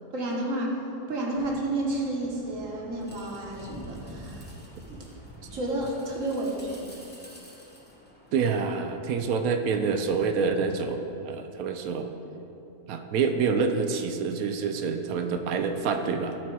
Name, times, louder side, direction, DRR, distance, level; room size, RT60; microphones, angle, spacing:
voice 1, 0.1-0.8 1.1-4.4 4.9-5.0 5.5-7.0, right 1 dB, 60° right, -1 dB, 1.6 m, -31 dB
sound 1, 1.4-8.8, equal, 10° left, 0.8 m, -47 dB
voice 2, 8.3-12.1 12.9-16.4, right 5 dB, 75° right, 6 dB, 1.0 m, -27 dB
13.0 x 4.4 x 4.6 m, 2.9 s
omnidirectional pair, 1.6 m